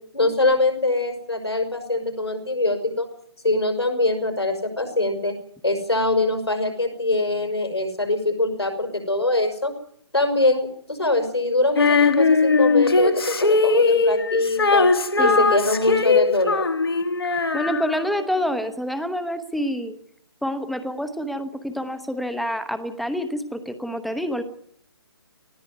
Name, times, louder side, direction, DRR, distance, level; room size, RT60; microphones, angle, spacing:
voice 1, 0.1-3.1 3.4-5.3 5.6-9.7 10.1-14.9 15.2-16.7, left 2 dB, 80° left, 5 dB, 5.7 m, -23 dB
Female singing, 11.8-18.2, left 4 dB, 65° left, 1.7 m, -20 dB
voice 2, 17.5-20.0 20.4-24.4, equal, ahead, 11 dB, 0.9 m, -27 dB
19.5 x 15.0 x 9.5 m, 0.67 s
figure-of-eight pair, 140°, 14 cm